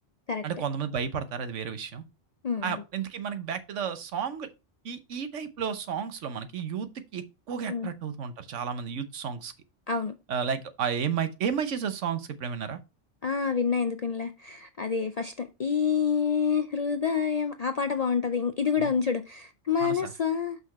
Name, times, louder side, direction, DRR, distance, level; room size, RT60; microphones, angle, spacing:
voice 1, 0.4-2.0 2.6-4.5 4.8-9.5 10.3-12.8 18.8-18.9 19.8-20.1, right 7 dB, 90° right, 1.2 m, -32 dB
voice 2, 2.4-2.8 7.7-7.9 9.9-10.1 13.2-20.6, left 6 dB, 55° left, 0.4 m, -28 dB
5.9 x 5.6 x 4.2 m
omnidirectional pair, 1.2 m